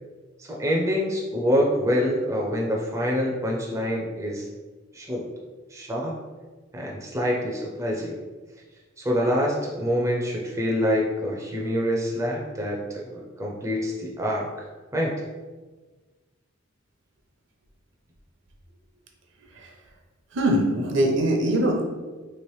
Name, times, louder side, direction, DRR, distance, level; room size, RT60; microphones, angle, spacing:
voice 1, 0.4-4.5 4.9-5.2 5.7-6.1 6.7-8.1 9.0-14.5 14.9-15.1, equal, 15° right, -2 dB, 0.4 m, -26 dB
voice 2, 20.3-21.8, right 1 dB, 65° right, 1 dB, 0.6 m, -22 dB
3.0 x 2.9 x 3.0 m, 1.3 s
head